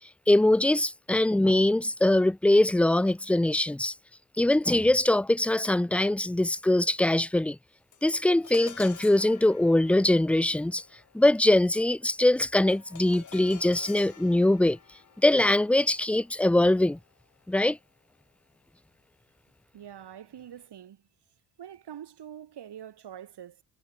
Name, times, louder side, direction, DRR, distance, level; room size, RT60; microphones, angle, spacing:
voice 1, 0.3-3.9 4.4-7.6 8.0-10.8 11.1-14.8 15.2-17.0 17.5-17.8, left 1 dB, 5° left, 0.5 m, -22 dB
sound 1, 7.9-17.4, left 7 dB, 40° left, 7.1 m, -50 dB
voice 2, 19.7-21.0 21.6-23.6, right 10 dB, 55° right, 7.7 m, -45 dB
cardioid pair, 145°, 47 cm